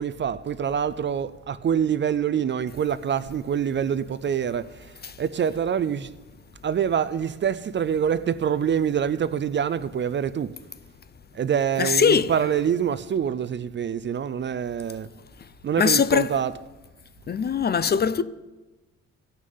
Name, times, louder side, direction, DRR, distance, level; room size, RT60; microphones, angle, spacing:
voice 1, 0.0-6.1 6.6-10.6 11.3-15.1 15.6-16.7, right 8 dB, 40° right, 0.5 m, -26 dB
voice 2, 11.8-12.3 15.8-16.3 17.3-18.2, left 6 dB, 35° left, 0.5 m, -21 dB
16.5 x 6.4 x 5.5 m
cardioid pair, 90°, 30 cm